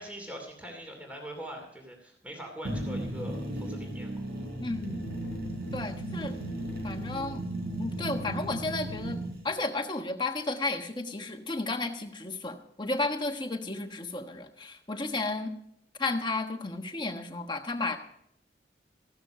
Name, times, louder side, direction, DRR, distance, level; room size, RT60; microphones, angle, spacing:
voice 1, 0.0-4.2, equal, 10° right, 2 dB, 2.6 m, -42 dB
sound 1, 2.6-9.4, right 1 dB, 60° right, 4.0 m, -35 dB
voice 2, 4.6-5.0 5.7-6.3 6.8-7.4 7.8-15.5 16.0-18.0, left 2 dB, 25° left, 5 dB, 1.2 m, -33 dB
15.0 x 13.0 x 5.0 m, 0.71 s
head